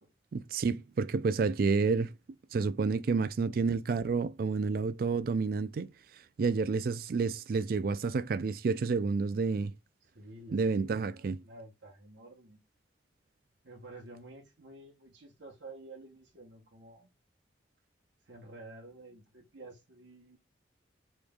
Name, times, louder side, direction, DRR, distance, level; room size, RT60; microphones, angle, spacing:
voice 1, 0.3-2.1 2.5-5.9 6.4-9.7 10.5-11.4, right 4 dB, 50° right, 0.3 m, -29 dB
voice 2, 10.0-12.6 13.6-17.1 18.2-20.4, right 2 dB, 75° right, 1.0 m, -51 dB
5.2 x 3.1 x 2.3 m
head